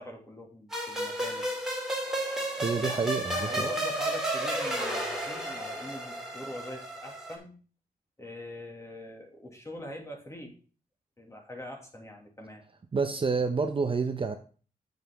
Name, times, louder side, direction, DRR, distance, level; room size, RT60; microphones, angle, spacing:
voice 1, 0.0-1.5 2.8-3.0 3.3-7.5 8.2-10.5 11.2-12.6, left 1 dB, 20° left, 1 dB, 2.0 m, -43 dB
sound 1, 0.7-7.4, right 1 dB, 5° right, 2.6 m, -32 dB
voice 2, 2.6-3.7 12.9-14.4, right 4 dB, 35° right, 7 dB, 0.7 m, -28 dB
7.9 x 7.2 x 3.5 m, 0.39 s
wide cardioid pair, 115°, 16 cm